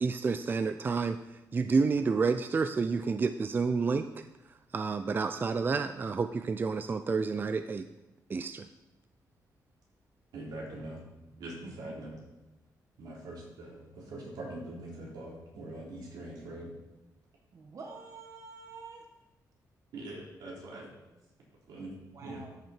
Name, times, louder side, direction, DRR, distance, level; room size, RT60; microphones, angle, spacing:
voice 1, 0.0-1.2 1.5-4.1 4.7-7.8 8.3-8.7, right 4 dB, 30° right, 10 dB, 0.4 m, -29 dB
voice 2, 10.3-11.0 11.4-12.2 13.0-16.7 19.9-20.9 21.7-21.9 22.2-22.5, right 1 dB, 85° right, -4 dB, 3.9 m, -43 dB
voice 3, 11.6-11.9 17.5-19.0 22.1-22.5, right 4 dB, 50° right, 0 dB, 1.6 m, -47 dB
13.0 x 6.4 x 4.5 m, 1.0 s
cardioid pair, 120°, 7 cm